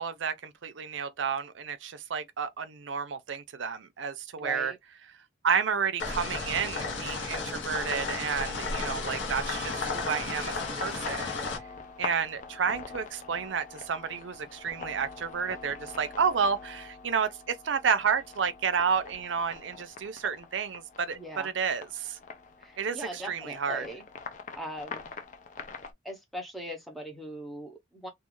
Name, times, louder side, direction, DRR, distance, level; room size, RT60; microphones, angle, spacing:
voice 1, 0.0-4.7 5.4-11.3 12.0-22.2 22.8-23.9, right 6 dB, 80° right, 0.5 m, -31 dB
voice 2, 4.4-4.8 8.6-9.0 21.1-21.5 22.6-24.0 24.5-25.1 26.0-28.1, equal, ahead, 0.6 m, -40 dB
sound 1, 6.0-11.6, left 4 dB, 80° left, 0.8 m, -33 dB
Trumpet, 6.7-12.3, right 2 dB, 50° right, 0.8 m, -50 dB
sound 2, 9.6-25.9, left 5 dB, 40° left, 0.4 m, -45 dB
2.4 x 2.4 x 3.0 m
head